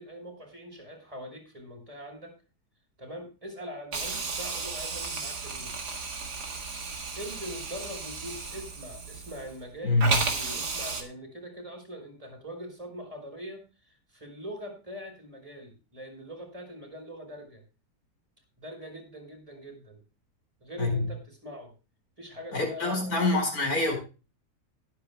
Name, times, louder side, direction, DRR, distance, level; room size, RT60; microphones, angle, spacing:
voice 1, 0.0-2.3 3.0-5.7 7.1-17.6 18.6-20.0 20.6-21.7 22.2-23.3, equal, 20° right, 3 dB, 4.9 m, -42 dB
Hiss, 3.9-9.6 10.0-11.0, right 4 dB, 80° right, 2.6 m, -34 dB
voice 2, 9.8-10.2 20.8-20.9 22.5-24.0, left 2 dB, 60° left, 2 dB, 5.8 m, -25 dB
19.5 x 9.9 x 2.3 m, 0.32 s
omnidirectional pair, 1.7 m